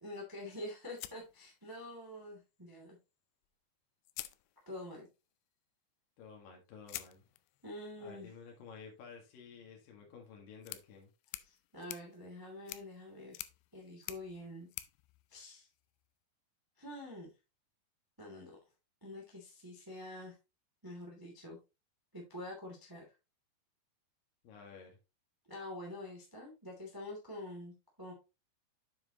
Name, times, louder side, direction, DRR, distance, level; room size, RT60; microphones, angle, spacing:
voice 1, 0.0-3.0 4.6-5.1 7.6-8.3 11.4-13.4 13.7-14.7 15.3-15.7 16.8-17.3 18.2-18.6 19.0-20.3 20.8-21.6 22.1-23.0 25.5-28.1, left 1 dB, 10° right, -1 dB, 0.9 m, -46 dB
sound 1, 1.0-2.1 3.4-3.5 4.0-5.1 6.9-16.1, left 17 dB, 80° left, 2.6 m, -50 dB
voice 2, 6.2-7.2 8.0-11.1 24.4-25.0, left 5 dB, 60° left, 0 dB, 3.0 m, -52 dB
7.5 x 7.1 x 2.9 m, 0.27 s
omnidirectional pair, 5.1 m